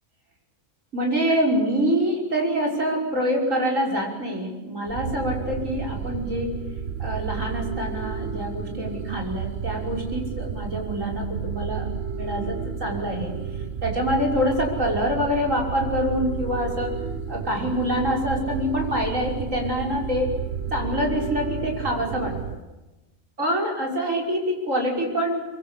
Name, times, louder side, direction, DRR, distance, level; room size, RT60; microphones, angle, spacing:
voice 1, 0.9-6.6 7.0-11.9 12.1-13.3 13.8-17.0 17.3-20.3 20.7-22.6 23.4-25.6, equal, 75° right, 0 dB, 6.3 m, -25 dB
sound 1, 4.9-22.6, right 7 dB, 55° right, 1.2 m, -32 dB
25.5 x 22.5 x 8.4 m, 1.1 s
omnidirectional pair, 1.3 m